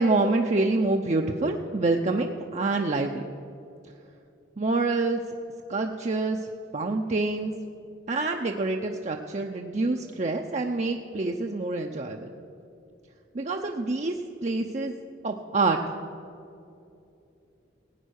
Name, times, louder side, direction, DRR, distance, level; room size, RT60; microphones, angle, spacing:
voice 1, 0.0-3.2 4.6-5.2 5.7-7.5 8.1-12.3 13.3-14.2 14.4-14.9 15.2-15.8, right 3 dB, 40° right, 3 dB, 0.6 m, -26 dB
16.0 x 9.1 x 6.4 m, 2.7 s
head